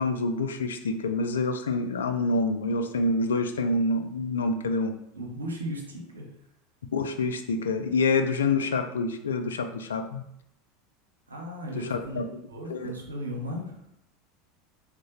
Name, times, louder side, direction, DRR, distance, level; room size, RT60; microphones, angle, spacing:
voice 1, 0.0-4.9 6.9-10.2 11.7-12.4 12.7-12.9, left 3 dB, 80° left, 7 dB, 0.3 m, -27 dB
voice 2, 5.1-6.3 11.3-12.2 12.5-13.8, equal, 90° right, -1 dB, 0.6 m, -36 dB
3.6 x 2.1 x 2.8 m, 0.78 s
hypercardioid pair, 80°, 0 cm